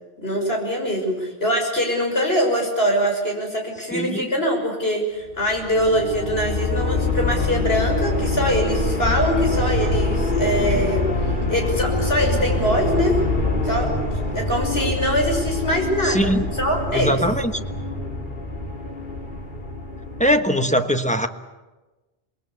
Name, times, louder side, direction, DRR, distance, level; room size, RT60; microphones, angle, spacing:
voice 1, 0.2-11.1 11.5-13.2 13.6-13.9 14.3-17.2, equal, 70° left, 1 dB, 6.4 m, -23 dB
voice 2, 3.9-4.2 16.0-16.5 16.9-17.5 20.2-21.3, equal, 5° left, 7 dB, 1.2 m, -21 dB
sound 1, 5.4-20.3, left 2 dB, 50° left, 3.1 m, -24 dB
27.5 x 21.0 x 8.4 m, 1.1 s
omnidirectional pair, 1.1 m